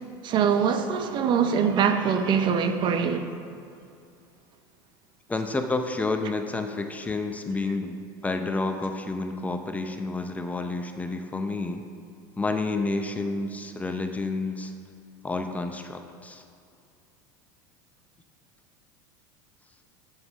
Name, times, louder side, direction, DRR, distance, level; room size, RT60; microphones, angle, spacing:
voice 1, 0.2-3.3, right 7 dB, 45° right, 0.7 m, -23 dB
voice 2, 5.3-11.8 12.4-14.7 15.2-16.4, left 3 dB, 15° left, 0.6 m, -30 dB
7.3 x 6.7 x 5.4 m
supercardioid pair, 105°, 11 cm